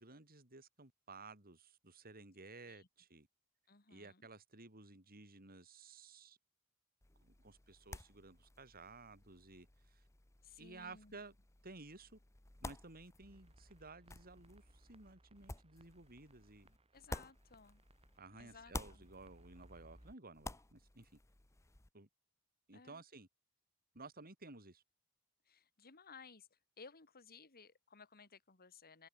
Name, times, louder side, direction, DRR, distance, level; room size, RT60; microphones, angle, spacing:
voice 1, 0.0-3.3 3.9-6.4 7.2-10.0 10.6-11.4 11.6-12.2 12.6-16.8 18.2-21.1 21.9-22.1 22.7-23.3 23.9-24.8, right 3 dB, 45° right, 5.3 m, -55 dB
voice 2, 3.7-4.3 10.4-11.2 16.9-17.8 18.3-19.0 22.7-23.0 25.5-29.1, left 5 dB, 45° left, 2.8 m, -59 dB
sound 1, 7.0-18.2 18.5-21.9, left 2 dB, 15° left, 0.8 m, -53 dB
sound 2, 13.2-20.1, right 1 dB, 25° right, 2.8 m, -65 dB
head